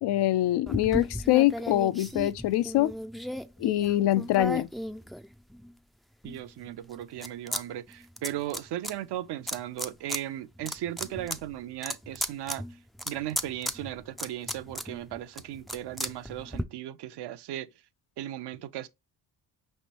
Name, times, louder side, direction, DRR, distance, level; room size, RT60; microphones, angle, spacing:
voice 1, 0.0-2.9 3.6-4.7, left 14 dB, 70° left, 0.5 m, -24 dB
sound 1, 0.7-5.7 6.2-7.6 7.9-8.9 9.5-10.2 10.6-16.6, equal, ahead, 0.3 m, -36 dB
voice 2, 6.2-12.6 13.1-17.7 18.2-18.9, right 13 dB, 70° right, 0.6 m, -37 dB
5.2 x 3.3 x 2.9 m
cardioid pair, 80°, 42 cm